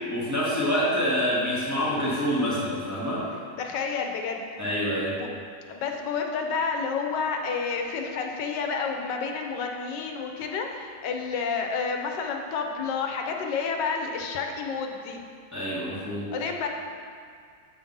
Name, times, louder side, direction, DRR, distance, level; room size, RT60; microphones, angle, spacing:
voice 1, 0.1-3.3 4.6-5.1 15.5-16.3, equal, 10° right, -9 dB, 1.4 m, -26 dB
voice 2, 3.6-4.4 5.2-5.3 5.7-15.2 16.3-16.7, left 5 dB, 85° left, 3 dB, 1.3 m, -30 dB
7.8 x 3.6 x 5.4 m, 2.1 s
omnidirectional pair, 1.9 m